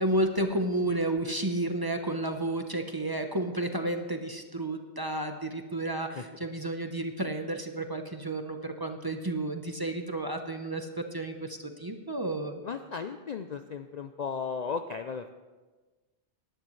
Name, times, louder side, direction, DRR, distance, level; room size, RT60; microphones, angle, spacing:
voice 1, 0.0-12.6, right 1 dB, 25° right, 5 dB, 0.8 m, -31 dB
voice 2, 12.6-15.3, left 5 dB, 50° left, 8 dB, 0.5 m, -35 dB
19.0 x 11.0 x 3.2 m, 1.3 s
omnidirectional pair, 1.1 m